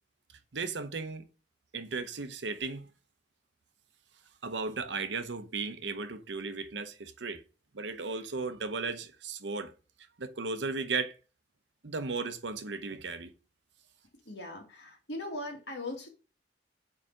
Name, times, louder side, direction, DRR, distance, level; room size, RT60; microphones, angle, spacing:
voice 1, 0.5-1.2 1.7-2.9 4.4-7.4 7.7-9.7 10.2-11.1 11.8-13.3, right 4 dB, 80° right, 0.8 m, -35 dB
voice 2, 14.3-16.1, left 2 dB, 70° left, 2.2 m, -39 dB
4.9 x 4.8 x 6.1 m
head